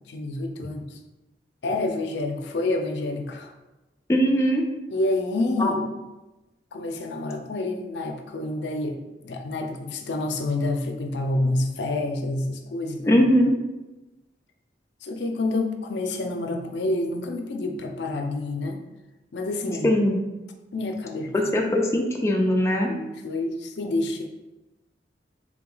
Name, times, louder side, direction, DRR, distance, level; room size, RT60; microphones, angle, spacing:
voice 1, 0.1-1.0 1.6-3.5 4.9-5.8 6.7-13.3 15.0-18.8 19.3-19.9 20.7-21.3 22.9-24.3, left 2 dB, 75° left, 4 dB, 0.5 m, -28 dB
voice 2, 4.1-4.6 5.6-5.7 13.1-13.5 19.8-20.2 21.3-22.9, equal, 15° left, 0 dB, 0.4 m, -20 dB
3.6 x 2.9 x 3.8 m, 1.0 s
head